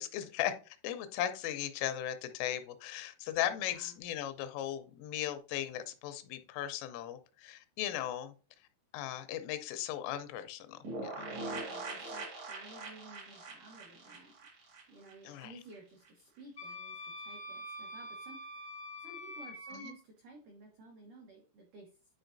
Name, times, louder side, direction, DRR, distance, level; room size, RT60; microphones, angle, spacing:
voice 1, 0.0-8.3 8.9-10.8 11.2-11.3 15.2-15.5 19.7-19.9, left 11 dB, 90° left, 3.3 m, -37 dB
voice 2, 3.6-4.0 11.2-14.3 14.9-21.9, right 2 dB, 80° right, 1.8 m, -54 dB
sound 1, 10.8-15.5 15.7-15.8 16.1-16.2, right 2 dB, 65° right, 1.7 m, -42 dB
Wind instrument woodwind instrument, 16.6-19.9, left 1 dB, 65° left, 0.6 m, -45 dB
9.9 x 4.5 x 2.6 m
omnidirectional pair, 5.6 m